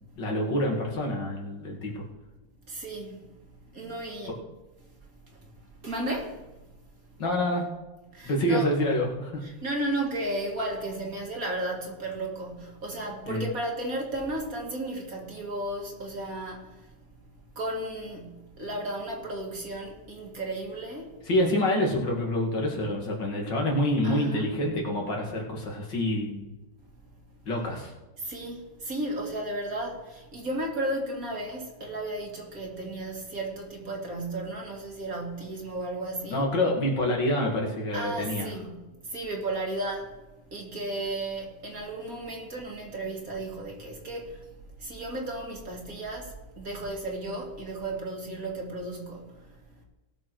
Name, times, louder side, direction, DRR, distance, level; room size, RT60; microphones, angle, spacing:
voice 1, 0.2-2.1 7.2-7.7 8.2-9.4 13.3-13.4 21.3-26.5 27.4-27.9 36.3-38.5, left 1 dB, 65° left, 2.8 m, -27 dB
voice 2, 2.7-3.3 3.7-4.3 5.3-5.5 5.8-6.4 8.1-8.8 9.6-16.9 17.6-21.1 24.0-24.5 28.2-36.4 37.9-40.2 40.5-44.5 44.8-49.4, right 1 dB, 45° right, 2.4 m, -34 dB
19.0 x 6.6 x 4.7 m
omnidirectional pair, 2.1 m